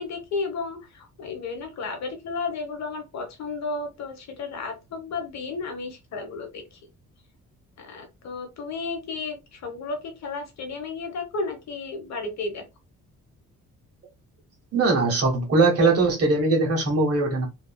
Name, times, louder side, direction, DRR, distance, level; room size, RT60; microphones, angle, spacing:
voice 1, 0.0-6.8 7.8-12.6, left 3 dB, 65° left, 1.0 m, -33 dB
voice 2, 14.7-17.5, right 3 dB, 50° right, 1.3 m, -21 dB
2.9 x 2.7 x 2.2 m
cardioid pair, 90°, 30 cm